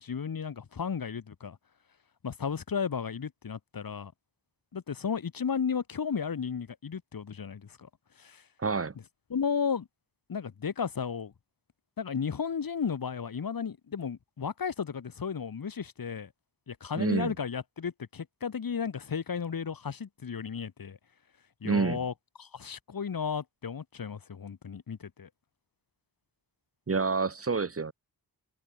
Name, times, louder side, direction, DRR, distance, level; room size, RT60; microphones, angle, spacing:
voice 1, 0.0-1.6 2.2-4.1 4.7-7.9 8.2-8.4 9.3-9.9 10.3-11.3 12.0-16.3 16.7-21.0 21.6-22.1 22.4-25.3, left 6 dB, 60° left, 3.0 m, -34 dB
voice 2, 8.6-8.9 16.9-17.3 21.6-22.0 26.9-27.9, right 4 dB, 35° right, 1.6 m, -28 dB
wide cardioid pair, 140°, 40 cm